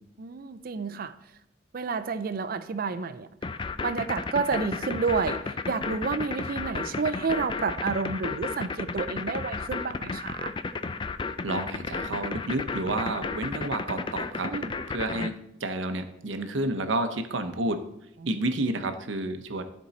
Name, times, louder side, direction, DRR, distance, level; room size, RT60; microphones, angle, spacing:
voice 1, 0.2-1.1 1.7-3.3 3.8-10.5 14.4-14.7, right 4 dB, 50° right, 12 dB, 0.5 m, -30 dB
sound 1, 3.4-15.3, left 4 dB, 25° left, 0.4 m, -32 dB
voice 2, 11.4-14.5 14.9-15.3 15.6-17.8 18.3-19.6, right 2 dB, 80° right, 8 dB, 0.8 m, -30 dB
12.5 x 4.6 x 4.1 m, 0.81 s
head